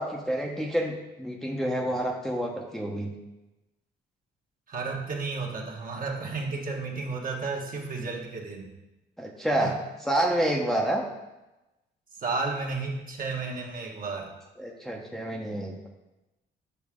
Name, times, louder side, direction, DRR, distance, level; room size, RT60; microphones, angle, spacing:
voice 1, 0.0-3.1 9.2-9.8 10.0-11.0 14.6-15.9, right 1 dB, ahead, -1 dB, 1.0 m, -28 dB
voice 2, 4.7-8.7 9.6-9.7 12.2-14.3, right 4 dB, 45° right, 0 dB, 1.5 m, -32 dB
8.3 x 5.6 x 3.7 m, 1.0 s
cardioid pair, 90°, 20 cm